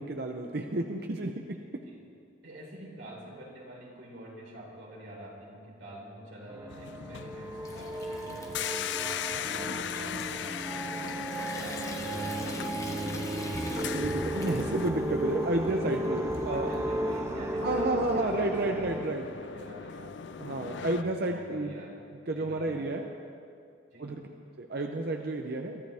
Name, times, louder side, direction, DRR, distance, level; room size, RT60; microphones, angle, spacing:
voice 1, 0.0-1.6 13.1-13.2 13.7-16.7 17.6-19.2 20.4-21.7 22.3-23.0 24.0-24.2 24.6-25.8, right 2 dB, 55° right, 3 dB, 0.7 m, -31 dB
voice 2, 2.4-12.3 15.5-22.0 22.3-22.9 23.9-24.1, right 1 dB, 80° right, -4 dB, 4.4 m, -46 dB
sound 1, 6.5-19.0, right 1 dB, 15° right, 0.6 m, -34 dB
sound 2, 6.7-21.0, left 8 dB, 60° left, 0.4 m, -39 dB
Water tap faucet / Sink (filling or washing) / Trickle dribble, 7.2-17.1, left 2 dB, 15° left, 1.2 m, -47 dB
23.5 x 13.0 x 3.5 m, 2.4 s
head